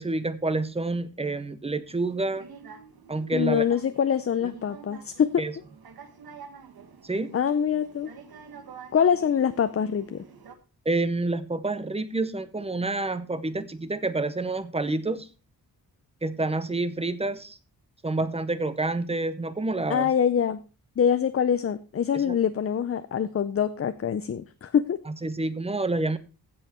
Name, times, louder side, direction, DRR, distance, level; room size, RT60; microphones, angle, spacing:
voice 1, 0.0-2.4 3.1-3.6 5.4-5.5 7.0-7.3 10.9-15.3 16.2-17.6 18.0-20.1 22.1-22.4 25.1-26.2, right 2 dB, 15° right, 13 dB, 0.7 m, -28 dB
sound 1, 1.9-10.6, right 5 dB, 75° right, 1.4 m, -48 dB
voice 2, 3.3-5.5 7.3-8.1 8.9-10.2 19.9-20.6 21.0-25.0, left 8 dB, 40° left, 12 dB, 0.5 m, -24 dB
15.5 x 5.6 x 4.4 m, 0.33 s
wide cardioid pair, 165°, 37 cm